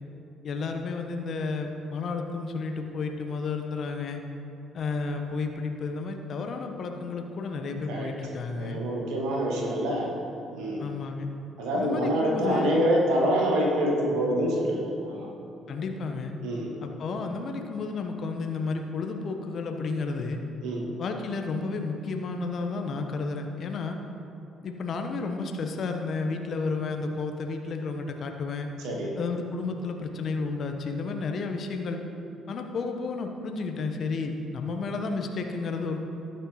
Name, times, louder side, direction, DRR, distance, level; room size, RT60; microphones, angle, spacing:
voice 1, 0.4-4.2 4.7-8.8 10.8-11.3 11.7-12.7 15.7-16.3 16.8-20.4 21.0-24.0 24.6-28.7 29.2-32.0 32.5-36.0, left 4 dB, 50° left, 4 dB, 1.1 m, -32 dB
voice 2, 8.5-10.1 10.5-10.8 11.6-15.3 16.4-16.7 20.6-20.8 28.8-29.1, equal, 65° right, -2 dB, 1.9 m, -26 dB
19.5 x 6.6 x 3.1 m, 2.8 s
figure-of-eight pair, 45°, 0 cm